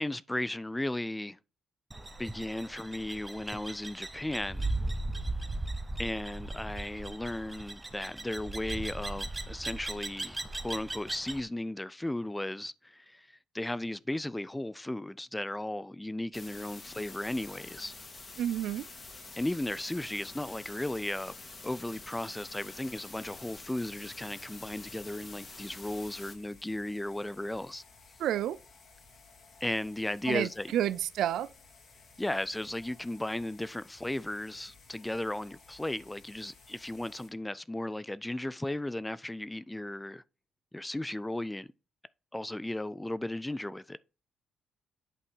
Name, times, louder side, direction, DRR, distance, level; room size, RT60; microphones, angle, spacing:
voice 1, 0.0-1.4 2.2-4.7 6.0-17.9 19.4-21.3 21.6-27.8 29.6-30.7 32.2-40.2 40.7-41.7 42.3-44.0, left 1 dB, 10° left, 0.3 m, -35 dB
sound 1, 1.9-11.4, right 2 dB, 15° right, 0.8 m, -38 dB
sound 2, 16.3-26.3, left 3 dB, 35° left, 1.8 m, -47 dB
voice 2, 18.4-18.9 28.2-28.6 30.3-31.5, right 11 dB, 80° right, 0.4 m, -30 dB
sound 3, 24.0-37.3, left 4 dB, 55° left, 2.1 m, -57 dB
8.3 x 3.3 x 5.4 m
cardioid pair, 90°, 0 cm